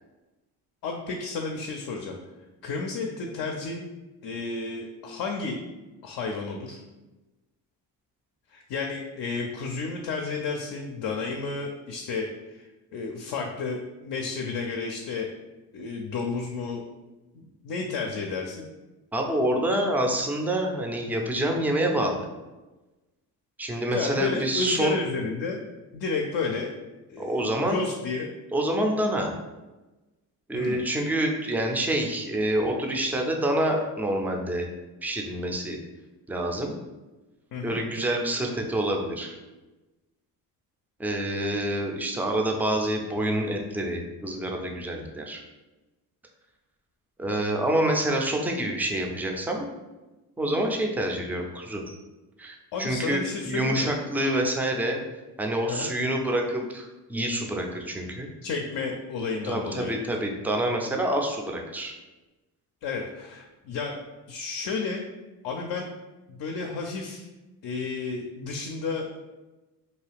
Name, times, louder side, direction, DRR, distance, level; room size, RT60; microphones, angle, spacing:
voice 1, 0.8-2.2 2.6-3.9 4.2-5.6 6.0-6.8 8.5-15.3 15.7-16.8 17.3-18.7 23.9-25.6 25.9-26.7 27.1-28.3 30.5-30.8 37.5-37.8 52.7-53.9 55.7-55.9 58.4-59.9 62.8-64.0 64.3-65.0 65.4-65.9 66.3-67.3 67.6-69.2, left 4 dB, 55° left, 2 dB, 0.5 m, -32 dB
voice 2, 19.1-22.3 23.6-24.9 27.2-27.8 28.5-29.3 30.5-34.7 35.0-35.8 36.3-36.7 37.6-39.4 41.0-45.4 47.2-49.7 50.4-51.9 52.4-55.0 55.4-58.3 59.4-61.9, right 1 dB, 5° right, 1 dB, 0.4 m, -27 dB
2.7 x 2.3 x 3.3 m, 1.1 s
supercardioid pair, 65°, 44 cm